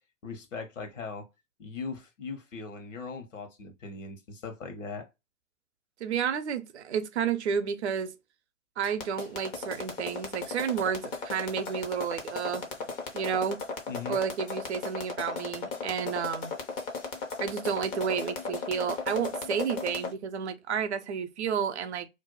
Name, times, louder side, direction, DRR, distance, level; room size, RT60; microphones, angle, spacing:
voice 1, 0.2-1.3 1.6-5.1 13.9-14.2, left 4 dB, 70° left, 1.1 m, -39 dB
voice 2, 6.0-8.2 8.8-12.6 13.1-13.6 14.1-16.5 17.4-22.1, right 7 dB, 55° right, 0.6 m, -31 dB
sound 1, 8.8-20.1, left 4 dB, 20° left, 0.5 m, -35 dB
2.6 x 2.2 x 3.8 m
figure-of-eight pair, 110°, 40 cm